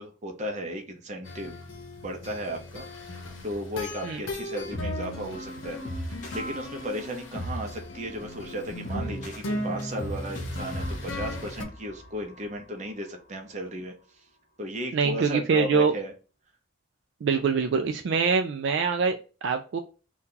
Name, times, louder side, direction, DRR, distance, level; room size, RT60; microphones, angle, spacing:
voice 1, 0.0-1.6 2.0-2.9 3.1-13.9 14.6-16.1, equal, 35° right, 3 dB, 0.6 m, -35 dB
sound 1, 1.2-11.7, left 1 dB, 75° left, 0.8 m, -37 dB
sound 2, 4.6-12.8, equal, 40° left, 0.8 m, -38 dB
voice 2, 14.9-15.9 17.2-19.8, right 5 dB, 65° right, 6 dB, 0.3 m, -24 dB
2.8 x 2.3 x 3.7 m, 0.34 s
head